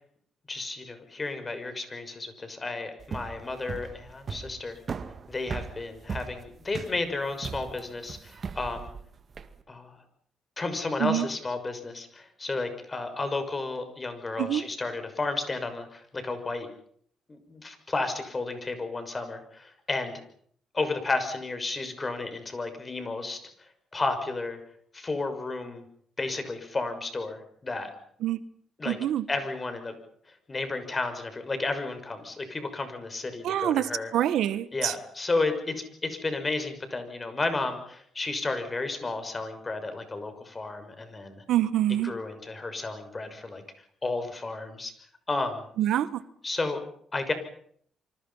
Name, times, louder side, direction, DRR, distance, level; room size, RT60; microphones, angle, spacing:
voice 1, 0.5-4.8 5.3-8.9 9.7-10.0 10.6-16.7 17.3-20.2 20.7-24.6 24.9-25.8 26.2-27.9 28.8-29.0 29.3-29.9 30.5-34.1 34.7-41.4 42.0-43.6 44.0-44.9 45.3-45.6 46.4-46.8 47.1-47.3, left 3 dB, 25° left, 8 dB, 6.2 m, -32 dB
sound 1, 3.0-9.5, right 5 dB, 45° right, 2.2 m, -38 dB
voice 2, 28.9-29.2 33.4-34.9 41.5-42.1 45.8-46.1, right 12 dB, 80° right, 15 dB, 1.4 m, -25 dB
27.0 x 25.5 x 5.7 m, 0.62 s
cardioid pair, 90°, 0 cm